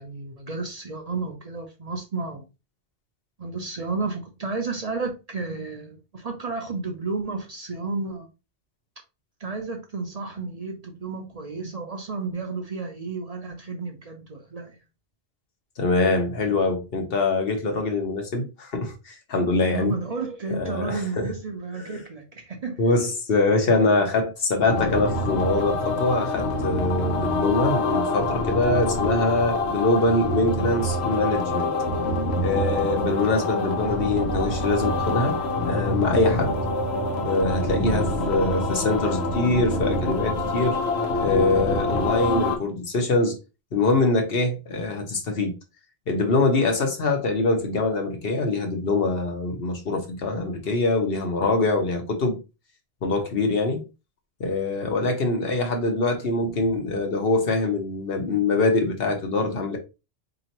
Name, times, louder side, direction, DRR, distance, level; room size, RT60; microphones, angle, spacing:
voice 1, 0.0-2.4 3.4-8.3 9.4-14.8 19.7-23.0 24.1-24.2, right 3 dB, 45° right, 0.6 m, -32 dB
voice 2, 15.8-19.9 20.5-21.3 21.9-22.0 22.8-31.7 32.4-36.6 37.2-40.8 41.2-43.4 43.7-45.5 46.1-52.4 53.0-53.8 54.4-59.8, left 3 dB, 65° left, 1.1 m, -24 dB
sound 1, 24.7-42.6, left 2 dB, 80° left, 1.1 m, -26 dB
4.1 x 3.0 x 2.9 m
omnidirectional pair, 1.1 m